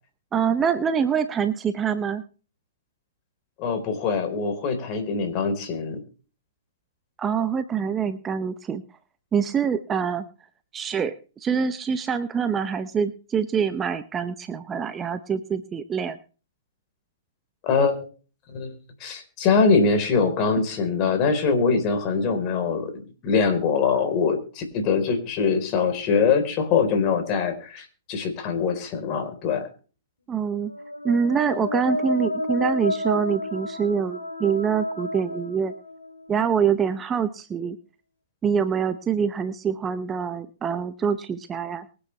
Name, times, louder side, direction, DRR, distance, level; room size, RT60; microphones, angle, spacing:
voice 1, 0.3-2.2 7.2-8.8 9.3-10.2 10.7-16.2 30.3-30.7 31.0-35.7 36.3-37.8 38.4-41.9, right 7 dB, 15° right, 11 dB, 0.8 m, -25 dB
voice 2, 3.6-6.0 17.6-18.1 18.5-18.7 19.0-29.7, left 5 dB, 35° left, 6 dB, 4.0 m, -23 dB
sound 1, 30.6-36.4, left 2 dB, 85° left, 3.3 m, -31 dB
23.5 x 8.8 x 3.3 m, 0.37 s
figure-of-eight pair, 120°, 0 cm